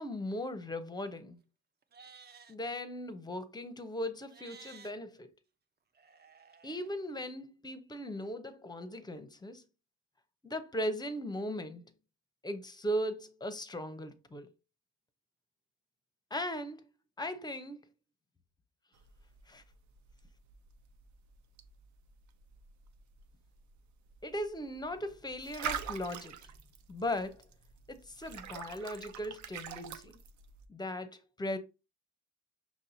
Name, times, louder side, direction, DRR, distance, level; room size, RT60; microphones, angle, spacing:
voice 1, 0.0-1.4 2.5-5.3 6.6-9.6 10.4-11.9 12.4-14.5 16.3-16.8 17.2-17.8 19.5-19.6 24.2-26.5 26.9-27.4 27.9-30.2 30.7-31.6, equal, 15° left, 0.6 m, -38 dB
Livestock farm animals working animals, 1.8-2.5 4.2-4.9 5.9-6.9, right 6 dB, 35° right, 0.5 m, -55 dB
sound 1, 18.9-30.7, right 8 dB, 70° right, 0.6 m, -46 dB
6.0 x 2.7 x 2.7 m
cardioid pair, 90°, 30 cm